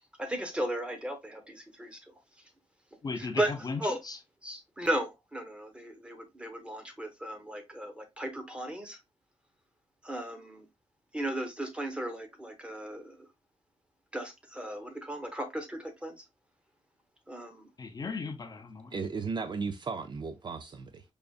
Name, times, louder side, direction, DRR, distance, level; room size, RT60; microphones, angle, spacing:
voice 1, 0.2-2.0 3.1-4.0 4.4-9.0 10.0-10.7 11.1-13.3 14.1-16.2 17.3-17.7, right 1 dB, 10° right, 0.9 m, -36 dB
voice 2, 3.0-4.2 17.8-19.0, left 4 dB, 35° left, 0.5 m, -37 dB
voice 3, 18.9-21.0, right 4 dB, 40° right, 0.4 m, -35 dB
5.0 x 2.4 x 2.3 m
wide cardioid pair, 120°, 12 cm